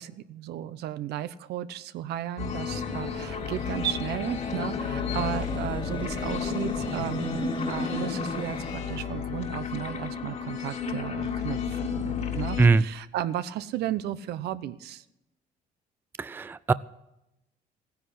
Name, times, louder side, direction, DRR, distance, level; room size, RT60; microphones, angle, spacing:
voice 1, 0.0-15.0, right 11 dB, 75° right, 14 dB, 0.8 m, -34 dB
sound 1, 2.4-12.7, left 6 dB, 45° left, 2.0 m, -32 dB
sound 2, 2.9-8.8, left 4 dB, 30° left, 1.4 m, -38 dB
voice 2, 16.2-16.7, right 4 dB, 10° right, 16 dB, 0.4 m, -21 dB
15.5 x 9.9 x 5.7 m, 0.90 s
cardioid pair, 110°, 17 cm